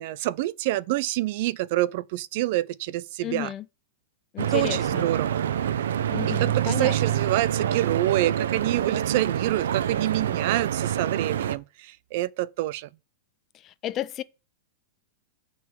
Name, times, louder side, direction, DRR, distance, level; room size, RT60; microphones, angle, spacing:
voice 1, 0.0-3.5 4.5-5.4 6.3-12.9, right 16 dB, 50° right, 0.4 m, -27 dB
voice 2, 3.2-3.7 4.3-5.1 6.1-7.2 13.5-14.2, left 12 dB, 25° left, 0.5 m, -33 dB
Stream / Boat Water vehicle, 4.4-11.6, right 10 dB, 90° right, 0.7 m, -26 dB
9.3 x 3.9 x 7.1 m
supercardioid pair, 160°, 0 cm